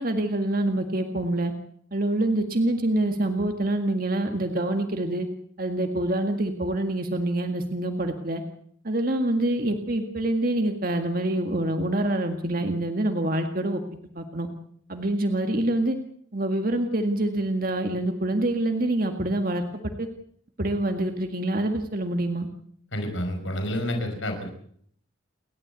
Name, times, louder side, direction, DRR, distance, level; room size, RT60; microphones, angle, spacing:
voice 1, 0.0-1.5 1.9-5.3 5.6-8.4 8.8-13.8 14.2-14.5 14.9-16.0 16.3-20.1 20.6-22.5, right 1 dB, 45° right, 5 dB, 1.9 m, -26 dB
voice 2, 22.9-24.5, equal, 75° left, 5 dB, 5.4 m, -29 dB
29.5 x 13.0 x 8.3 m, 0.65 s
head